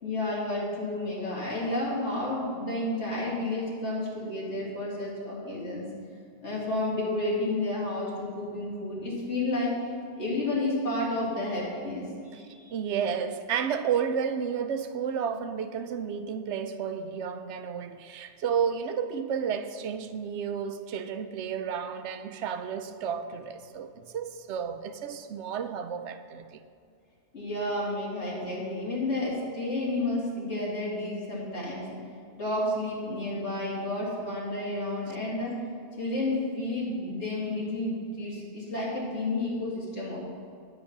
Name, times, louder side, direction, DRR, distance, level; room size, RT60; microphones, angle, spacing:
voice 1, 0.0-5.9 6.4-9.8 10.2-12.6 27.3-31.8 32.4-35.5 36.0-40.2, left 2 dB, 90° left, 2.7 m, -31 dB
voice 2, 12.7-26.6, right 7 dB, 85° right, 0.9 m, -32 dB
9.6 x 7.7 x 5.9 m
omnidirectional pair, 1.1 m